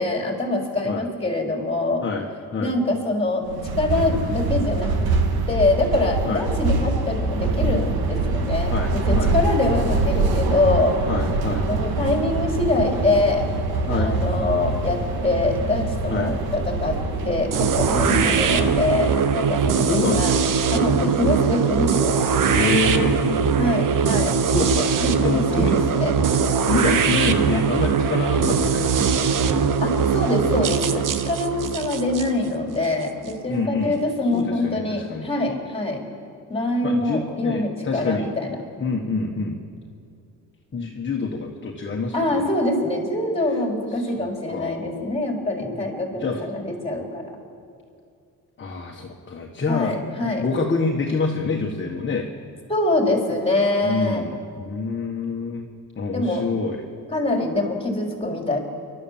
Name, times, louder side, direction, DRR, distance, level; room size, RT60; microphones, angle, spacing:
voice 1, 0.0-2.0 2.6-3.4 3.7-4.9 5.5-11.0 11.7-13.5 13.9-17.0 17.2-20.3 20.7-22.2 23.6-24.4 25.0-26.1 29.8-36.0 36.5-38.6 42.1-47.3 49.7-50.4 52.7-54.2 56.1-56.5 57.1-58.6, left 2 dB, 15° left, 1 dB, 3.8 m, -24 dB
sound 1, 3.5-19.2, right 3 dB, 80° right, 2.0 m, -24 dB
voice 2, 8.7-9.3 11.1-11.6 13.9-14.1 16.1-16.3 18.1-18.3 19.9-20.4 20.9-21.3 22.4-23.7 24.5-24.9 25.2-25.8 26.7-28.9 33.5-34.0 34.3-35.3 36.8-38.3 38.8-39.6 40.7-42.4 44.0-45.1 45.7-45.8 46.2-46.4 48.6-52.3 53.8-55.6 56.0-56.8, left 4 dB, 30° left, 1 dB, 1.6 m, -27 dB
sound 2, 17.5-33.3, right 6 dB, 60° right, 1.2 m, -21 dB
28.5 x 12.5 x 7.5 m, 2.4 s
cardioid pair, 120°, 36 cm